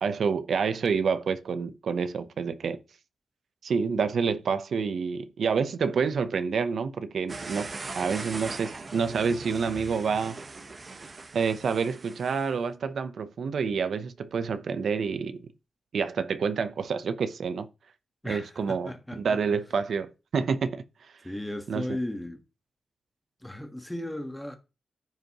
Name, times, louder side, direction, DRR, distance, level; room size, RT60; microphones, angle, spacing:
voice 1, 0.0-2.8 3.6-7.7 8.0-10.4 11.3-15.4 15.9-17.7 18.3-20.8 21.7-21.9, right 5 dB, 70° right, 0.7 m, -28 dB
sound 1, 7.3-12.5, right 3 dB, 35° right, 1.0 m, -40 dB
voice 2, 18.2-19.4 21.2-22.4 23.4-24.6, left 1 dB, 5° left, 1.4 m, -35 dB
14.0 x 5.2 x 3.0 m
wide cardioid pair, 125°, 0 cm